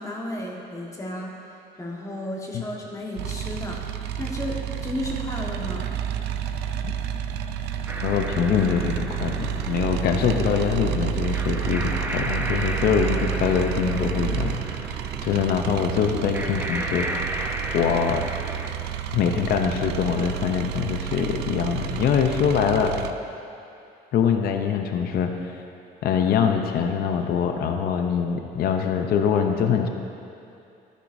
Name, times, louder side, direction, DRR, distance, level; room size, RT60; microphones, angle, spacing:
voice 1, 0.0-1.3 1.8-5.9, left 1 dB, 20° left, -2 dB, 1.4 m, -33 dB
sound 1, 3.2-23.1, right 9 dB, 85° right, 0.5 m, -30 dB
sound 2, 7.9-18.7, right 1 dB, 10° right, 0.7 m, -34 dB
voice 2, 8.0-17.4 17.7-18.2 19.1-22.9 24.1-25.6 26.0-29.9, left 7 dB, 65° left, 5 dB, 0.7 m, -24 dB
12.0 x 9.9 x 2.7 m, 2.6 s
cardioid pair, 110°, 17 cm